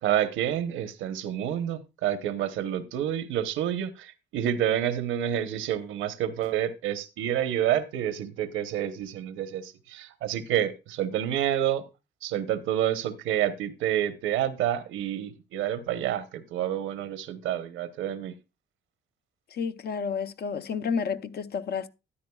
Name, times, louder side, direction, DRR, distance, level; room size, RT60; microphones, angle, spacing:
voice 1, 0.0-11.8 12.2-18.3, right 11 dB, 90° right, 1.0 m, -28 dB
voice 2, 19.5-21.9, left 6 dB, 55° left, 0.7 m, -30 dB
13.0 x 9.8 x 2.3 m
cardioid pair, 90°, 20 cm